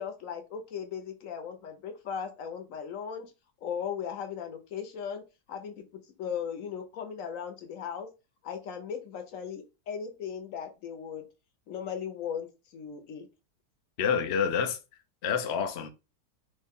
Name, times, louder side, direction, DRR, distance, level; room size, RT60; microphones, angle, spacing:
voice 1, 0.0-3.3 3.6-5.2 5.5-5.8 6.2-8.1 8.4-11.2 11.7-13.3, left 7 dB, 60° left, 1.0 m, -37 dB
voice 2, 14.0-14.8 15.2-15.9, left 7 dB, 85° left, 0.5 m, -27 dB
3.2 x 2.6 x 3.5 m
omnidirectional pair, 1.8 m